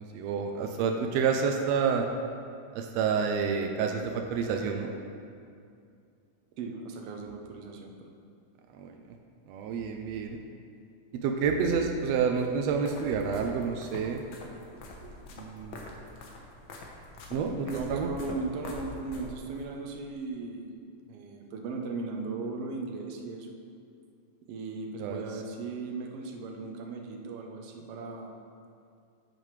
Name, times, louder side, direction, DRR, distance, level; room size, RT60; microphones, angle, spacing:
voice 1, 0.0-2.1 2.7-4.9 8.8-9.1 9.5-10.4 11.2-14.2 15.4-15.8 17.3-18.1 25.0-25.2, right 6 dB, 90° right, 3 dB, 1.4 m, -29 dB
voice 2, 6.6-7.9 15.0-15.1 17.6-23.5 24.5-28.3, right 3 dB, 70° right, 2 dB, 1.5 m, -37 dB
sound 1, 12.4-19.7, left 2 dB, 90° left, 1.0 m, -45 dB
10.0 x 7.5 x 3.2 m, 2.4 s
omnidirectional pair, 3.6 m